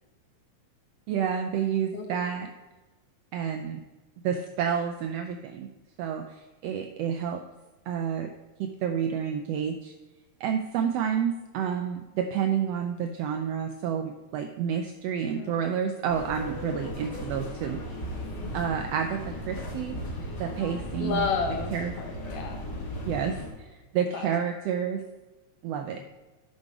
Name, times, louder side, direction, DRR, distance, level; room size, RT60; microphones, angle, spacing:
voice 1, 1.1-2.5 3.3-3.8 4.2-5.7 6.0-7.4 7.9-8.3 8.6-9.9 10.4-17.8 18.5-20.0 20.4-21.3 21.7-21.9 23.0-25.0 25.6-26.0, right 8 dB, 90° right, 6 dB, 1.4 m, -29 dB
voice 2, 1.9-2.3 15.4-15.5 21.0-22.6 24.1-24.3, left 5 dB, 70° left, 4 dB, 1.4 m, -31 dB
sound 1, 16.1-23.5, left 1 dB, 40° left, 2.1 m, -36 dB
11.0 x 5.3 x 4.6 m, 1.2 s
omnidirectional pair, 3.4 m